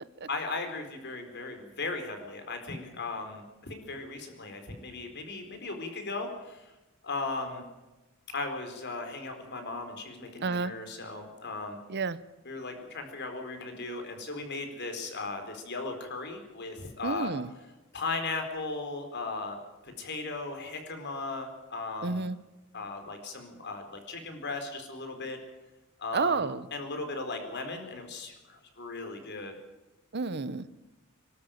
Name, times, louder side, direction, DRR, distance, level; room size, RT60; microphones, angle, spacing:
voice 1, 0.3-6.7 7.0-7.6 8.3-11.8 12.5-17.3 17.9-19.6 19.8-22.3 22.7-25.4 26.0-29.5, left 3 dB, 55° left, 6 dB, 4.3 m, -37 dB
voice 2, 10.4-10.7 11.9-12.2 17.0-17.5 22.0-22.4 26.1-26.7 30.1-30.7, right 4 dB, 50° right, 16 dB, 0.8 m, -30 dB
25.0 x 13.0 x 9.1 m, 1.1 s
head